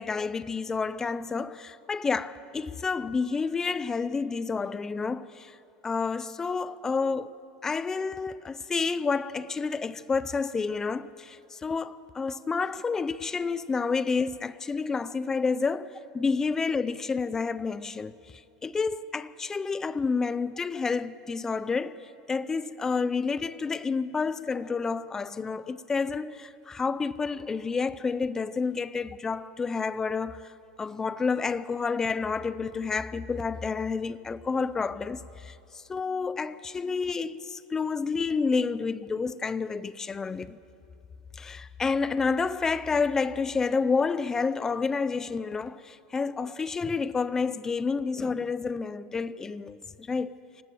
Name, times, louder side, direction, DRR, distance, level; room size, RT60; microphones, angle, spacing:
voice 1, 0.0-5.6 5.8-7.3 7.6-18.1 18.6-22.0 22.3-30.4 30.8-40.6 41.3-50.3, left 4 dB, 15° left, 0.6 m, -29 dB
26.5 x 18.5 x 7.7 m
supercardioid pair, 145°, 3 cm